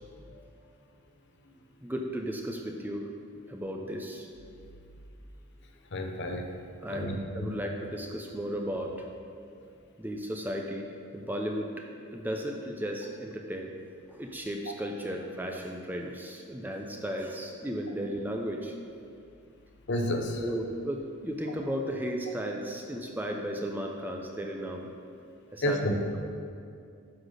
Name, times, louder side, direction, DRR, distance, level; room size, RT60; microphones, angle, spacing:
voice 1, 1.8-3.1 3.5-4.3 6.8-9.1 10.0-10.9 11.1-13.7 14.2-18.7 20.4-24.9 25.5-26.0, equal, 10° right, 1 dB, 0.5 m, -35 dB
voice 2, 5.9-6.5 6.9-7.6 19.9-20.4 25.6-25.9, left 1 dB, 50° left, 4 dB, 0.8 m, -30 dB
9.7 x 4.1 x 6.5 m, 2.4 s
head